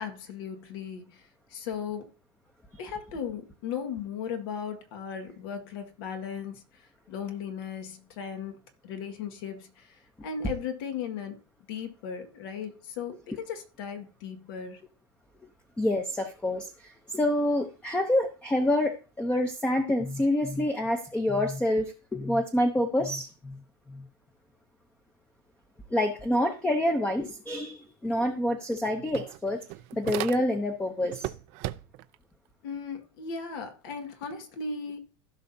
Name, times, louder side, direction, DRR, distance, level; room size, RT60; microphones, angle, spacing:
voice 1, 0.0-2.2 2.8-11.4 11.7-14.9 32.6-35.0, left 6 dB, 70° left, 1.8 m, -37 dB
voice 2, 15.8-23.6 23.9-24.1 25.9-29.6 29.9-31.3, left 1 dB, 10° left, 0.8 m, -27 dB
sound 1, 28.1-28.2 28.5-30.8 31.1-32.1, right 18 dB, 50° right, 0.5 m, -37 dB
15.5 x 5.7 x 2.8 m
supercardioid pair, 150°, 13 cm